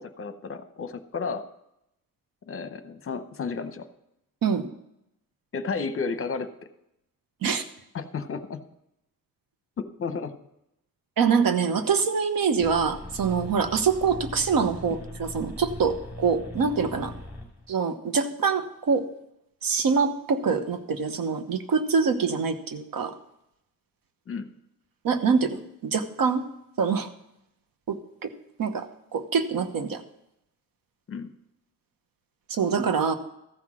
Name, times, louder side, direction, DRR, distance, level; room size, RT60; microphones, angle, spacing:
voice 1, 0.0-1.5 2.5-3.9 5.5-6.5 7.9-8.6 9.8-10.3 24.3-24.5 31.1-31.3, left 5 dB, 40° left, 10 dB, 0.8 m, -32 dB
voice 2, 11.2-17.1 17.7-19.1 19.6-23.1 25.0-26.4 26.8-27.1 27.9-28.0 28.2-28.3 28.6-28.9 29.1-30.0 32.5-33.1, right 5 dB, 75° right, 10 dB, 1.1 m, -25 dB
sound 1, 12.6-17.7, left 1 dB, 5° right, 2.4 m, -40 dB
14.0 x 5.9 x 6.2 m, 0.82 s
wide cardioid pair, 155°, 35 cm